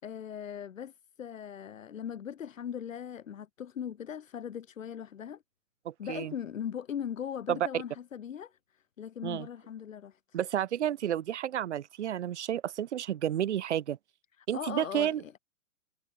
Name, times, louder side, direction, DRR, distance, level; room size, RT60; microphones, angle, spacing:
voice 1, 0.0-5.4 6.0-10.4 14.4-15.4, left 8 dB, 65° left, 4.1 m, -39 dB
voice 2, 5.9-6.3 7.5-7.8 9.2-9.5 10.3-14.0 14.5-15.2, right 10 dB, 55° right, 2.2 m, -31 dB
hypercardioid pair, 160°, 42 cm